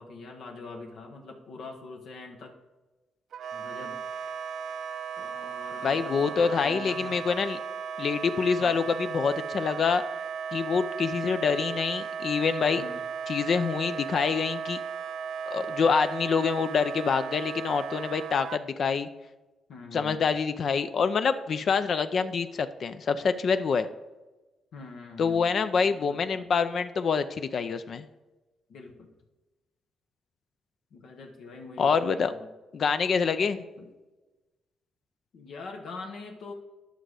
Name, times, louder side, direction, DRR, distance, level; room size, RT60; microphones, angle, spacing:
voice 1, 0.0-2.6 3.5-4.0 5.2-7.2 8.6-8.8 12.7-13.0 15.5-15.7 19.7-20.2 24.7-25.5 25.8-26.5 28.7-29.1 30.9-32.5 33.8-33.9 35.3-36.5, left 3 dB, 75° left, 1 dB, 1.1 m, -44 dB
Wind instrument woodwind instrument, 3.3-18.6, right 6 dB, 70° right, 0.4 m, -36 dB
voice 2, 5.8-7.6 8.0-10.0 10.5-12.8 13.3-14.8 15.5-19.1 19.9-23.9 25.2-28.1 31.8-32.3 32.7-33.6, left 5 dB, 55° left, 11 dB, 0.5 m, -26 dB
10.5 x 6.3 x 4.9 m, 1.1 s
cardioid pair, 95°, 0 cm